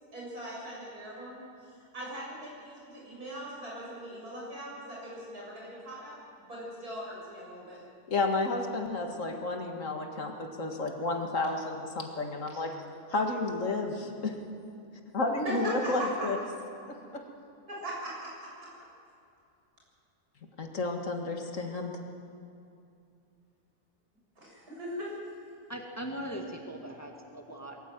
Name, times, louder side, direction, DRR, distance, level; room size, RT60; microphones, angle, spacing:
voice 1, 0.1-6.2 6.5-7.8 12.5-12.6 15.4-16.3 17.7-18.5 24.4-25.1, right 1 dB, 80° right, -5 dB, 7.8 m, -40 dB
voice 2, 8.1-12.7 13.1-14.4 15.1-16.4 16.8-17.2 20.6-21.9, left 2 dB, 55° left, 4 dB, 2.2 m, -31 dB
voice 3, 25.7-27.8, right 1 dB, 10° left, 2 dB, 1.8 m, -40 dB
22.5 x 14.5 x 9.1 m, 2.6 s
omnidirectional pair, 1.6 m